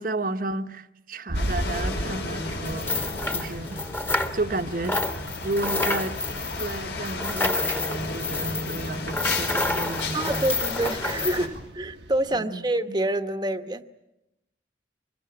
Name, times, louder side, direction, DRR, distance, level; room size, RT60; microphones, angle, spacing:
voice 1, 0.0-3.8 4.3-5.0 5.4-6.2 6.6-10.5 12.3-13.0, right 2 dB, 50° right, 1.0 m, -32 dB
sound 1, 1.3-11.5, left 2 dB, 85° left, 5.3 m, -34 dB
sound 2, 1.3-12.4, right 1 dB, 85° right, 1.2 m, -38 dB
sound 3, 2.7-4.6 4.8-11.4, left 2 dB, 10° left, 1.4 m, -29 dB
voice 2, 10.1-13.9, right 1 dB, 25° right, 1.0 m, -27 dB
25.0 x 22.0 x 8.9 m
head